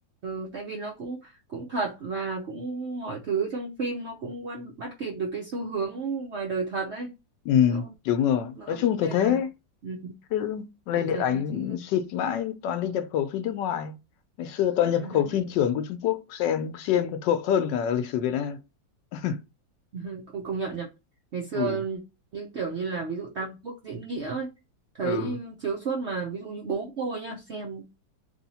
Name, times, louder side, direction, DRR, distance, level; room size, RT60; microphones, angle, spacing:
voice 1, 0.2-7.1 7.7-7.9 8.6-9.4 9.8-10.2 10.9-11.7 15.0-15.4 19.9-20.9 21.3-22.0 22.3-24.5 25.0-27.8, right 4 dB, 80° right, 0.6 m, -32 dB
voice 2, 7.5-9.5 10.3-14.0 14.4-18.6 19.1-19.4 21.5-21.8 25.0-25.4, left 9 dB, 75° left, 1.1 m, -26 dB
3.3 x 2.7 x 4.0 m
omnidirectional pair, 2.1 m